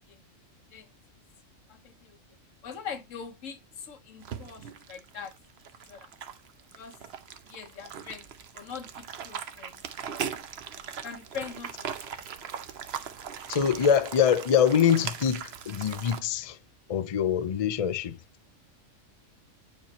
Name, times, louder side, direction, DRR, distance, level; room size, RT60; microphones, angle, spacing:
voice 1, 1.7-2.2 2.6-5.3 5.9-6.1 6.8-7.0 7.5-8.3 8.5-9.8 11.0-12.1, left 6 dB, 80° left, 1.4 m, -42 dB
sound 1, 4.2-16.2, right 7 dB, 60° right, 0.9 m, -39 dB
voice 2, 13.5-16.6 16.9-18.2, left 8 dB, 50° left, 0.4 m, -24 dB
9.6 x 4.6 x 2.8 m
omnidirectional pair, 1.3 m